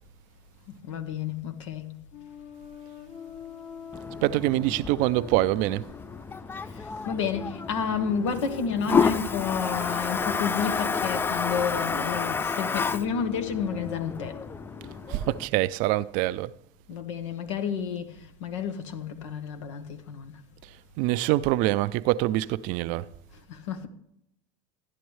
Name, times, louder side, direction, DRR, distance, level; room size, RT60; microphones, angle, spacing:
voice 1, 0.8-1.9 6.6-14.4 16.9-20.4 23.5-23.9, left 6 dB, 85° left, 1.2 m, -31 dB
sound 1, 2.1-15.1, left 7 dB, 45° left, 1.4 m, -45 dB
Toilet flush, 3.9-15.5, left 5 dB, 15° left, 0.3 m, -30 dB
voice 2, 4.2-5.9 15.1-16.5 21.0-23.1, right 16 dB, 60° right, 0.4 m, -25 dB
13.5 x 9.9 x 3.2 m
supercardioid pair, 100°, 15 cm